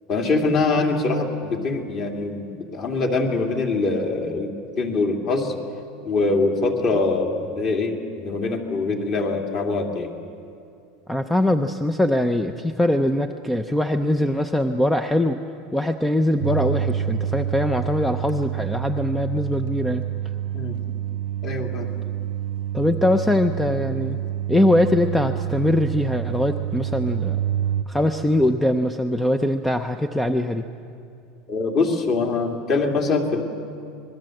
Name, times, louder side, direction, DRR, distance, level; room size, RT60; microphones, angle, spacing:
voice 1, 0.1-4.5 4.8-5.5 6.0-10.1 20.5-20.7 21.4-21.9 31.5-33.4, left 3 dB, 35° left, 3 dB, 2.5 m, -23 dB
voice 2, 11.1-15.4 15.7-20.0 22.7-24.2 24.5-27.4 27.9-30.6, left 1 dB, 5° left, 8 dB, 0.6 m, -22 dB
sound 1, 16.4-27.8, right 10 dB, 65° right, 0.5 m, -27 dB
25.5 x 21.0 x 7.8 m, 2.5 s
supercardioid pair, 160°, 0 cm